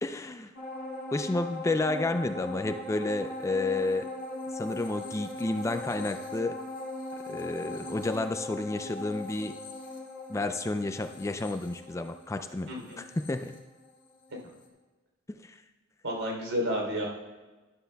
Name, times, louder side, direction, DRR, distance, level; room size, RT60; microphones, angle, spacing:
voice 1, 0.0-0.5 1.1-4.1 4.5-6.6 7.3-9.5 10.3-12.7 13.0-13.5 15.3-15.6, left 2 dB, 15° left, 8 dB, 0.3 m, -31 dB
sound 1, 0.6-14.2 14.6-14.7, left 2 dB, 40° left, 1.7 m, -40 dB
voice 2, 12.7-13.0 16.0-17.0, equal, 80° right, -1 dB, 3.3 m, -31 dB
12.5 x 11.5 x 2.3 m, 1.2 s
head